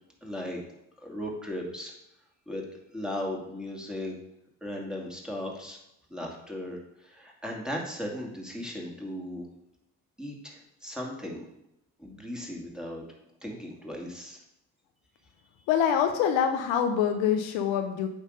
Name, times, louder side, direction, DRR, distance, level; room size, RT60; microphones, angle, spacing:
voice 1, 0.2-0.6 1.0-1.9 2.5-2.6 2.9-4.1 4.6-5.8 6.1-9.5 10.2-11.5 12.0-13.0 13.4-14.4, left 1 dB, ahead, -1 dB, 2.3 m, -37 dB
voice 2, 15.7-18.1, left 8 dB, 70° left, 6 dB, 0.8 m, -25 dB
8.6 x 3.7 x 5.1 m, 0.82 s
hypercardioid pair, 45°, 47 cm